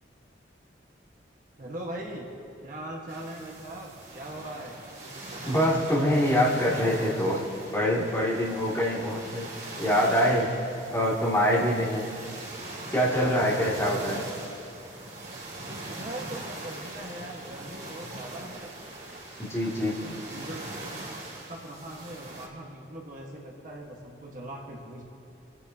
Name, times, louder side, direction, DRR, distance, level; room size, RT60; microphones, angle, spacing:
voice 1, 1.6-2.3 2.6-4.8 13.8-14.1 15.9-18.7 19.9-20.6 21.5-25.0, right 1 dB, 45° right, -1 dB, 1.5 m, -40 dB
sound 1, 3.1-22.5, right 2 dB, 70° right, 2.7 m, -41 dB
voice 2, 5.5-9.5 9.8-10.5 10.9-12.1 12.9-14.2 19.4-20.0, equal, 15° left, -7 dB, 2.3 m, -25 dB
29.5 x 10.0 x 2.8 m, 2.7 s
head